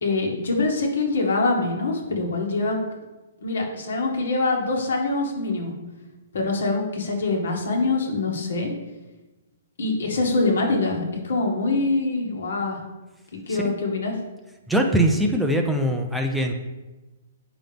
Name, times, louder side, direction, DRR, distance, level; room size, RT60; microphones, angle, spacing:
voice 1, 0.0-2.8 3.4-5.7 6.3-8.7 9.8-12.8 13.3-14.1, left 3 dB, 70° left, 0 dB, 1.9 m, -24 dB
voice 2, 14.7-16.5, right 1 dB, ahead, 2 dB, 0.4 m, -22 dB
8.9 x 5.8 x 3.5 m, 1.1 s
hypercardioid pair, 175°, 0 cm